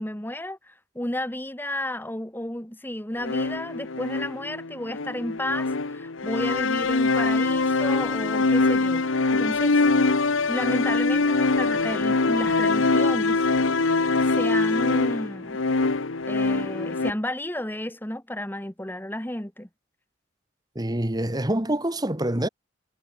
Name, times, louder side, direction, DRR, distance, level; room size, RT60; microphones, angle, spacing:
voice 1, 0.0-9.1 9.3-9.8 10.5-13.5 14.3-15.6 16.3-19.7, left 1 dB, 10° left, 1.9 m, -32 dB
sound 1, 3.2-17.1, left 3 dB, 85° left, 1.1 m, -23 dB
voice 2, 20.7-22.5, right 1 dB, 20° right, 1.7 m, -26 dB
head